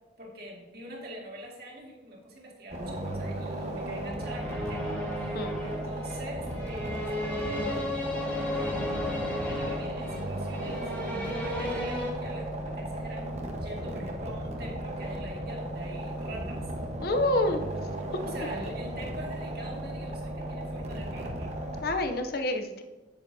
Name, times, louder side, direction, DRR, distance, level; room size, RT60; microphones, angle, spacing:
voice 1, 0.2-7.8 8.5-16.7 18.2-21.5, right 1 dB, 55° right, -2 dB, 2.2 m, -44 dB
sound 1, 2.7-21.8, right 1 dB, 35° right, 1.1 m, -35 dB
sound 2, 4.2-12.1, left 1 dB, 10° left, 1.6 m, -34 dB
voice 2, 17.0-17.7 21.8-22.8, left 1 dB, 55° left, 6 dB, 0.6 m, -27 dB
9.5 x 9.0 x 2.7 m, 1.2 s
head